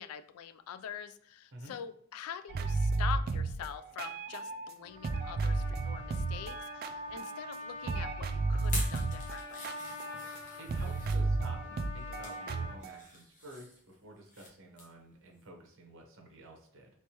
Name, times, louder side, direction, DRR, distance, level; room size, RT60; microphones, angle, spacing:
voice 1, 0.0-9.7, left 8 dB, 70° left, 12 dB, 0.3 m, -44 dB
sound 1, 2.5-4.7 5.0-7.6 7.8-13.0, right 3 dB, 45° right, 0.3 m, -33 dB
Trumpet, 4.8-12.8, left 3 dB, 85° left, 1.4 m, -46 dB
sound 2, 8.6-11.2 11.8-12.4 12.8-14.5 14.8-15.0 15.4-15.5, left 2 dB, 35° left, 0.9 m, -45 dB
voice 2, 10.6-16.9, right 1 dB, 60° right, 2 dB, 0.9 m, -51 dB
3.2 x 3.2 x 2.9 m, 0.63 s
head